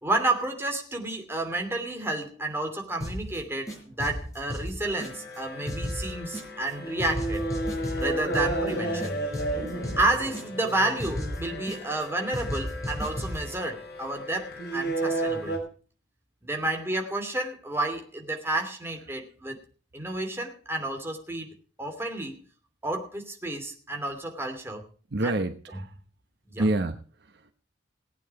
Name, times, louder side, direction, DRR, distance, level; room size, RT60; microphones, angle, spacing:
voice 1, 0.0-7.5 8.0-9.2 9.5-15.6 16.4-19.6 19.9-21.5 21.8-22.4 22.8-24.9 25.2-25.3 26.5-26.6, right 2 dB, 15° right, 2.8 m, -30 dB
sound 1, 3.0-3.4 3.7-5.4 5.7-6.7 7.0-8.7 9.0-10.7 11.0-12.0 12.3-13.5, equal, 20° left, 5.3 m, -35 dB
sound 2, 4.8-15.6, right 1 dB, 60° left, 4.6 m, -33 dB
voice 2, 25.1-26.0 26.6-27.5, right 2 dB, 65° right, 1.0 m, -28 dB
18.5 x 9.2 x 4.8 m
head